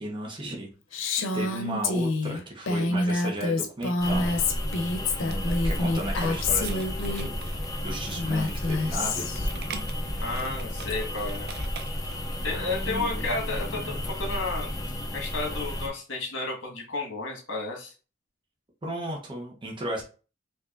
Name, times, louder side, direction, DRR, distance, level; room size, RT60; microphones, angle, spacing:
voice 1, 0.0-4.4 5.2-9.3 12.4-13.2 18.8-20.0, right 1 dB, 25° right, -2 dB, 0.8 m, -35 dB
Female speech woman speaking, 0.9-7.3 8.1-9.5, left 2 dB, 90° left, 0.6 m, -27 dB
sound 1, 4.0-15.9, left 1 dB, 20° left, 0.5 m, -32 dB
sound 2, 5.1-12.3, right 6 dB, 55° right, 0.5 m, -45 dB
voice 2, 10.2-11.5 12.4-14.7 15.1-17.9, left 3 dB, 70° left, 0 dB, 1.5 m, -32 dB
4.7 x 2.6 x 2.5 m, 0.35 s
head